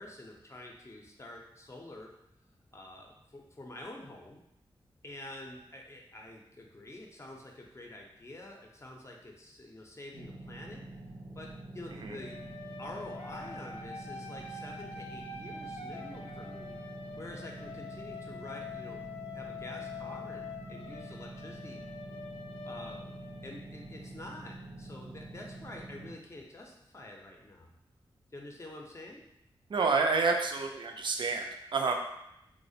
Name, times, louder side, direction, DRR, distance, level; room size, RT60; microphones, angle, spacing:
voice 1, 0.0-2.1 2.7-4.4 5.0-10.8 11.4-12.4 12.8-16.8 17.2-19.0 19.3-21.8 22.6-23.0 23.4-27.7 28.3-29.2, left 1 dB, 30° left, 0 dB, 0.5 m, -47 dB
sound 1, 10.1-26.1, right 2 dB, 90° right, 0.6 m, -46 dB
sound 2, 12.1-24.0, left 4 dB, 85° left, 0.4 m, -45 dB
voice 2, 29.7-31.9, right 4 dB, 55° right, 3 dB, 0.4 m, -29 dB
2.3 x 2.1 x 2.6 m, 0.82 s
cardioid pair, 60°, 10 cm